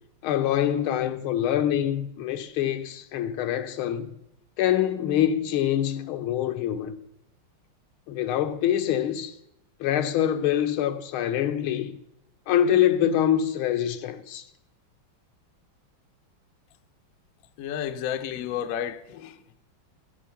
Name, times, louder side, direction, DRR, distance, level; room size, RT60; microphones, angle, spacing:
voice 1, 0.2-4.1 4.6-7.0 8.1-9.3 9.8-12.0 12.5-14.4, left 10 dB, 85° left, 1.6 m, -25 dB
voice 2, 17.6-19.5, left 9 dB, 70° left, 0.8 m, -32 dB
13.5 x 7.5 x 5.7 m
omnidirectional pair, 2.3 m